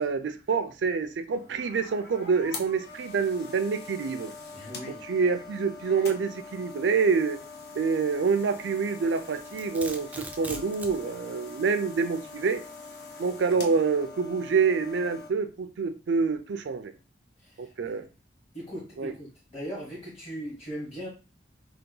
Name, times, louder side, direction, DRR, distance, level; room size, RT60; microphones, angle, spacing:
voice 1, 0.0-4.3 4.9-7.4 7.7-12.6 13.2-16.9 17.6-18.1 19.0-19.1, right 5 dB, 80° right, 9 dB, 0.4 m, -27 dB
sound 1, 1.3-15.3, left 4 dB, 60° left, 0.5 m, -43 dB
voice 2, 4.5-5.0 17.4-18.0 18.5-21.1, equal, 35° left, -6 dB, 1.1 m, -39 dB
Domestic sounds home sounds, 9.1-11.0, right 2 dB, 10° right, 0.3 m, -40 dB
2.8 x 2.2 x 3.7 m, 0.33 s
head